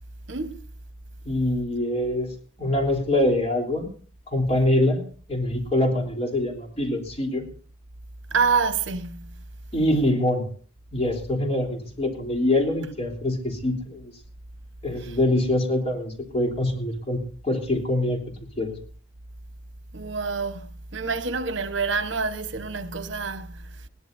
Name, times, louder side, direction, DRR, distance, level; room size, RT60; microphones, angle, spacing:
voice 1, 0.3-0.6 8.3-9.3 15.0-15.1 19.9-20.7 20.9-23.6, right 5 dB, 70° right, 1.2 m, -27 dB
voice 2, 1.2-2.3 2.6-3.9 4.3-5.0 5.3-7.4 9.7-10.5 10.9-14.1 14.8-17.2 17.4-18.2 18.6-18.7, left 1 dB, 30° left, 3.6 m, -24 dB
21.5 x 17.0 x 2.7 m
head